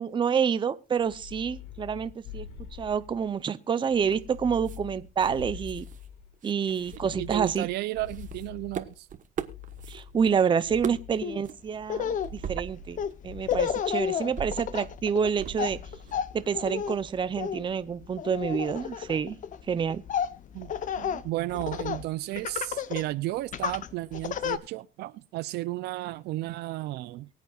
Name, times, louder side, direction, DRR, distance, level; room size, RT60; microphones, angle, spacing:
voice 1, 0.0-2.5 2.8-5.9 6.4-7.7 9.9-12.8 13.2-15.8 16.3-19.4 19.7-20.0, right 7 dB, 30° right, 0.7 m, -28 dB
sound 1, 1.0-3.4 3.9-6.3 6.8-9.0 9.4-11.3 12.0-12.9 13.2-13.7 14.6-15.3 15.6-16.1, left 9 dB, 90° left, 2.0 m, -45 dB
sound 2, 3.8-4.3 4.6-4.8 5.2-6.1 6.3-7.7 8.1-10.3 10.6-11.1 11.4-11.5 12.2-13.2 13.5-16.1, right 8 dB, 50° right, 1.2 m, -40 dB
voice 2, 7.2-9.1 20.5-27.3, right 17 dB, 80° right, 0.5 m, -33 dB
Laughter, 11.2-11.4 11.8-22.1 22.4-23.1 23.5-24.6, left 8 dB, 50° left, 0.8 m, -32 dB
23.5 x 8.2 x 2.4 m
cardioid pair, 110°, 17 cm